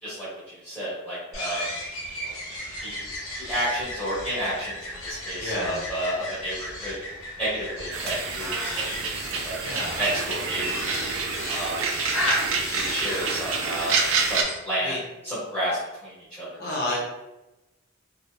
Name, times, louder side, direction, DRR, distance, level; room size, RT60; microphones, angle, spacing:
voice 1, 0.0-1.6 2.2-2.3 2.8-3.0 3.4-4.8 5.0-6.9 7.4-9.6 10.0-10.9 11.5-11.8 12.3-12.5 12.7-13.9 14.2-14.9 15.2-16.6, equal, 5° left, -11 dB, 1.3 m, -31 dB
sound 1, 1.3-14.6, left 1 dB, 90° left, 0.7 m, -35 dB
voice 2, 5.4-5.8 9.6-10.1 14.8-15.0 16.6-17.0, left 1 dB, 50° left, -5 dB, 0.8 m, -30 dB
sound 2, 7.9-14.4, right 5 dB, 70° right, 0.3 m, -28 dB
2.8 x 2.1 x 2.2 m, 0.98 s
head